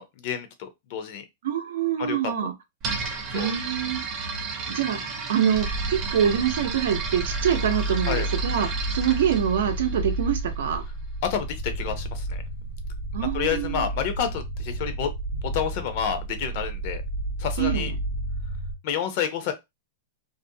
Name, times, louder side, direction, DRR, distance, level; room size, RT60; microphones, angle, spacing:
voice 1, 0.0-1.2 2.0-2.2 3.3-3.5 8.1-8.3 11.3-12.4 13.3-15.1 15.4-17.0 17.4-17.9 18.8-19.5, left 8 dB, 45° left, 0.6 m, -29 dB
voice 2, 1.4-2.5 3.3-4.0 4.3-4.4 4.7-10.8 13.1-13.9 17.6-17.9, right 9 dB, 75° right, 0.6 m, -25 dB
sound 1, 2.8-10.6, right 4 dB, 25° right, 0.6 m, -33 dB
sound 2, 5.5-18.7, right 1 dB, 70° left, 1.0 m, -31 dB
2.5 x 2.1 x 2.6 m
supercardioid pair, 155°, 0 cm